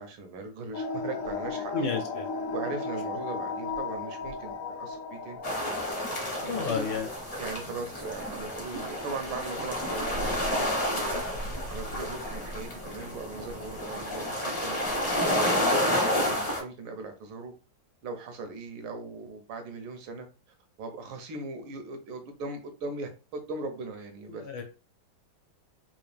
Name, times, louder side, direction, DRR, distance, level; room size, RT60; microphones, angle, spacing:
voice 1, 0.0-2.0 2.5-5.4 6.4-6.9 7.4-11.2 11.5-14.8 15.2-17.5 18.0-20.3 20.8-24.4, right 3 dB, 85° right, 6 dB, 1.7 m, -39 dB
sound 1, 0.7-5.9, left 4 dB, 85° left, 0.7 m, -35 dB
voice 2, 1.7-2.2 6.4-7.1 24.4-24.6, left 5 dB, 65° left, 5 dB, 1.3 m, -31 dB
sound 2, 5.4-16.6, left 1 dB, 35° left, 0.6 m, -30 dB
4.0 x 2.5 x 3.3 m, 0.32 s
omnidirectional pair, 2.3 m